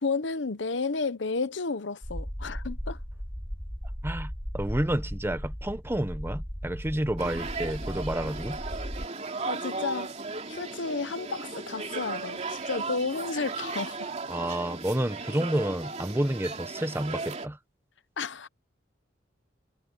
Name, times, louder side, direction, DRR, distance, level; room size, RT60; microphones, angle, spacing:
voice 1, 0.0-3.0 9.4-10.1 10.5-14.1 18.2-18.5, left 4 dB, 70° left, 0.9 m, -32 dB
sound 1, 2.0-9.1, equal, 10° left, 2.3 m, -37 dB
voice 2, 4.0-8.6 14.3-17.6, right 1 dB, 15° right, 1.0 m, -30 dB
sound 2, 7.2-17.5, right 4 dB, 40° right, 2.7 m, -36 dB
head